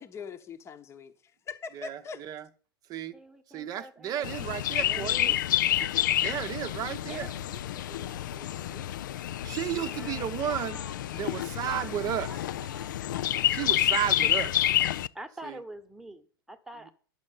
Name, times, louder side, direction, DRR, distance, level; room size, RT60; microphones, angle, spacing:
voice 1, 0.0-2.2, left 5 dB, 20° left, 1.0 m, -42 dB
voice 2, 1.7-2.5 2.9-3.1 3.5-5.3 5.8-5.9 6.2-7.3 9.5-10.8 11.1-12.3 13.5-14.5 15.4-15.6, right 10 dB, 30° right, 0.8 m, -33 dB
voice 3, 3.1-6.7 7.1-9.2 9.7-10.5 11.6-12.2 13.0-13.6 14.2-14.8 15.1-16.9, right 1 dB, 5° right, 1.2 m, -48 dB
Chirp tweet, 4.2-15.1, left 12 dB, 55° left, 0.4 m, -29 dB
voice 4, 10.5-11.3 11.7-13.2, left 3 dB, 80° left, 1.0 m, -48 dB
11.0 x 6.3 x 7.6 m
figure-of-eight pair, 90°, 12 cm